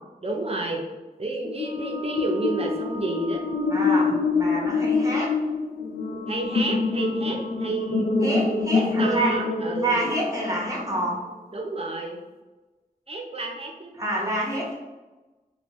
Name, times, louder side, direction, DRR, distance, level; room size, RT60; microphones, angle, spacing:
voice 1, 0.2-0.8 1.2-3.4 6.3-8.1 8.7-10.0 11.5-12.2 13.1-13.9, right 2 dB, 40° right, 0 dB, 0.6 m, -30 dB
sound 1, 1.4-10.8, left 4 dB, 80° left, 0.4 m, -26 dB
voice 2, 3.7-5.3 8.2-9.4 9.7-11.2 14.0-14.7, right 1 dB, 20° right, -4 dB, 1.0 m, -27 dB
3.3 x 2.2 x 3.0 m, 1.1 s
wide cardioid pair, 60°, 16 cm